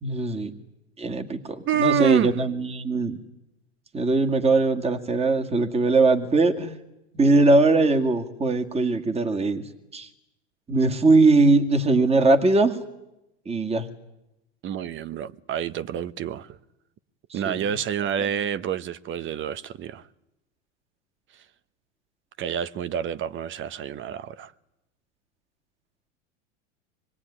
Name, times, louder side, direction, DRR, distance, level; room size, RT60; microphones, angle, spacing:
voice 1, 0.0-0.5 1.0-3.2 3.9-6.8 7.1-9.6 9.9-10.1 10.7-12.8 13.5-13.9 17.3-17.6, right 3 dB, 15° right, 2.1 m, -21 dB
voice 2, 1.7-2.3 14.6-16.6 17.3-20.1 22.4-24.5, right 9 dB, 35° right, 1.0 m, -28 dB
24.5 x 20.5 x 9.9 m
hypercardioid pair, 105°, 36 cm